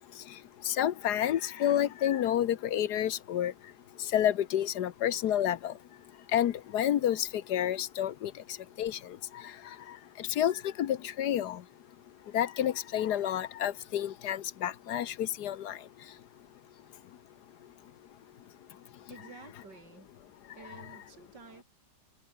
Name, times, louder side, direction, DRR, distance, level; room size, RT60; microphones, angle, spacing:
voice 1, 0.6-3.5 4.1-5.7 6.3-8.3 8.8-9.0 10.2-11.6 12.3-15.8, left 11 dB, 70° left, 1.4 m, -29 dB
voice 2, 19.1-20.1 20.6-21.6, right 5 dB, 80° right, 3.1 m, -51 dB
open air
omnidirectional pair, 1.9 m